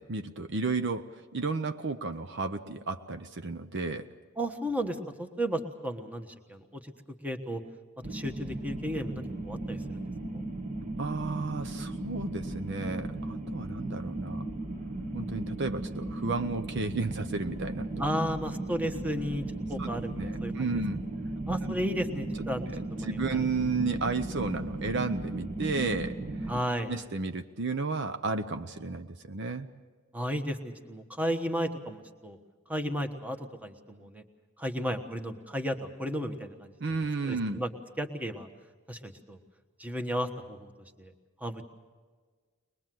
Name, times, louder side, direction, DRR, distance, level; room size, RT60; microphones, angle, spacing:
voice 1, 0.0-4.1 11.0-14.5 15.1-18.0 19.8-19.9 20.2-21.0 21.6-21.7 22.7-26.5 26.9-29.7 36.8-37.6, right 3 dB, 55° right, 8 dB, 0.7 m, -33 dB
voice 2, 4.4-6.9 7.2-7.6 8.1-10.0 10.3-10.4 18.0-20.7 21.5-23.4 26.5-26.9 30.1-32.4 32.7-34.2 34.6-36.7 37.3-37.7 38.0-38.5 38.9-39.4 39.8-40.7 41.0-41.1 41.4-41.6, equal, 5° right, 6 dB, 1.2 m, -34 dB
sound 1, 8.0-26.6, right 2 dB, 35° right, 1.3 m, -36 dB
22.0 x 21.5 x 7.7 m, 1.5 s
head